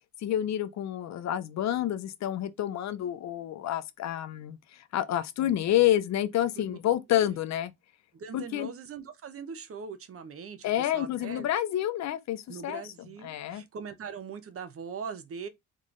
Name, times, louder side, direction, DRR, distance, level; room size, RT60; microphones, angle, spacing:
voice 1, 0.2-7.7 8.3-8.7 10.6-12.8 13.2-13.6, left 12 dB, 65° left, 0.6 m, -29 dB
voice 2, 8.1-11.5 12.5-15.5, right 6 dB, 50° right, 0.8 m, -41 dB
3.7 x 3.2 x 3.7 m
cardioid pair, 90°, 30 cm